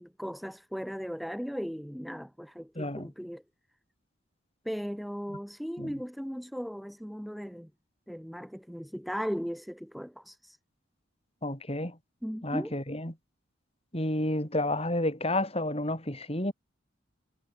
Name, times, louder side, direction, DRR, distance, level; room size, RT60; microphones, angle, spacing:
voice 1, 0.0-3.4 4.6-7.7 8.1-10.6 12.2-12.8, equal, ahead, 4.7 m, -37 dB
voice 2, 2.8-3.1 5.8-5.9 11.4-12.0 12.4-13.1 13.9-16.5, left 1 dB, 30° left, 7.9 m, -30 dB
head